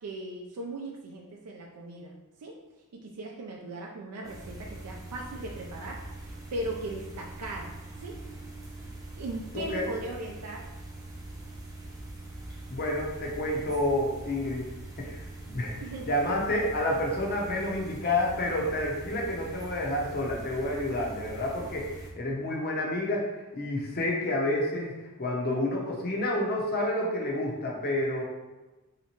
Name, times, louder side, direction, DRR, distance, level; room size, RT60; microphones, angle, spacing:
voice 1, 0.0-2.1 2.4-2.5 3.0-7.7 8.0-8.1 9.2-10.7 15.8-16.1, right 1 dB, 85° right, -1 dB, 0.4 m, -38 dB
sound 1, 4.2-22.1, right 2 dB, 15° right, 0.5 m, -43 dB
voice 2, 9.5-9.9 12.7-14.6 15.0-15.7 16.0-28.2, left 1 dB, 45° left, -1 dB, 0.7 m, -29 dB
3.2 x 2.8 x 2.9 m, 1.1 s
head